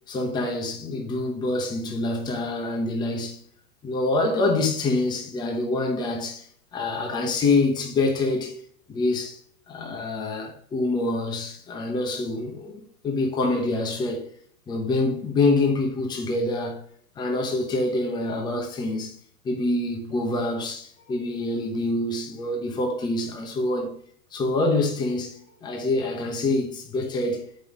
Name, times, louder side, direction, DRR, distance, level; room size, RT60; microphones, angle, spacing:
voice 1, 0.1-3.4 3.8-8.6 8.9-9.4 9.7-14.2 14.7-16.8 17.2-19.2 19.4-23.9 24.3-27.5, left 2 dB, 10° left, 0.8 m, -26 dB
7.6 x 5.4 x 3.6 m
supercardioid pair, 155°, 47 cm